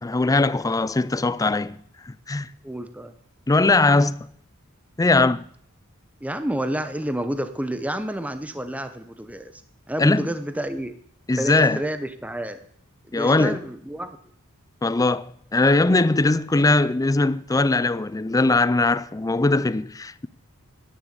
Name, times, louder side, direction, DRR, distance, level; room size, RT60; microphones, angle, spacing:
voice 1, 0.0-1.8 2.1-2.5 3.5-4.2 5.0-5.4 10.0-10.3 11.3-11.8 13.1-13.6 14.8-20.3, left 2 dB, 15° left, 0.4 m, -20 dB
voice 2, 2.6-3.1 6.2-9.6 9.9-10.9 11.4-12.6 13.1-14.2, right 1 dB, 5° right, 0.8 m, -30 dB
11.0 x 10.5 x 8.0 m
head